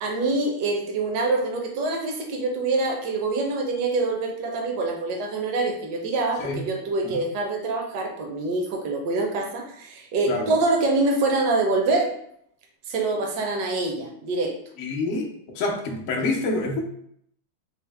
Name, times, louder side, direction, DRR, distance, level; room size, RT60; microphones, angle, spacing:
voice 1, 0.0-12.1 12.9-14.6, right 3 dB, 70° right, 1 dB, 1.0 m, -25 dB
voice 2, 14.8-15.3 15.5-16.8, left 2 dB, 85° left, -1 dB, 0.7 m, -27 dB
4.3 x 2.0 x 3.3 m, 0.69 s
omnidirectional pair, 2.4 m